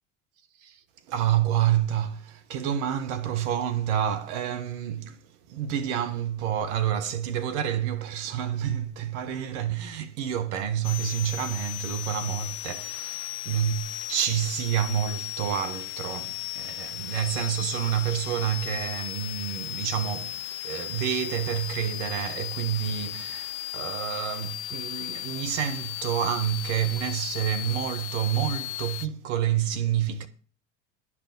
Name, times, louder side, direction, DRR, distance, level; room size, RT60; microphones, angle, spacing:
voice 1, 0.6-20.4 20.6-30.3, right 10 dB, 65° right, 1.3 m, -28 dB
sound 1, 10.8-29.1, left 15 dB, 65° left, 0.6 m, -36 dB
12.0 x 6.1 x 7.6 m
hypercardioid pair, 75°, 38 cm